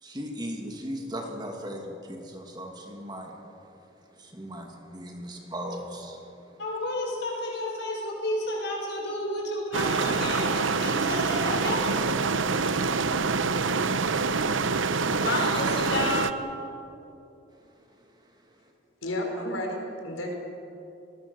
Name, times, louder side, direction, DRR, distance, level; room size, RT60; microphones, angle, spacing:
voice 1, 0.0-3.3 4.2-6.2, equal, 20° right, 2 dB, 2.5 m, -37 dB
voice 2, 6.6-12.4 14.0-14.4 15.2-16.4, left 1 dB, 55° left, -1 dB, 6.9 m, -31 dB
sound 1, 9.7-16.3, right 4 dB, 75° right, 0.9 m, -26 dB
voice 3, 19.0-20.4, left 1 dB, 90° left, 1 dB, 5.0 m, -32 dB
27.0 x 20.0 x 7.1 m, 2.8 s
head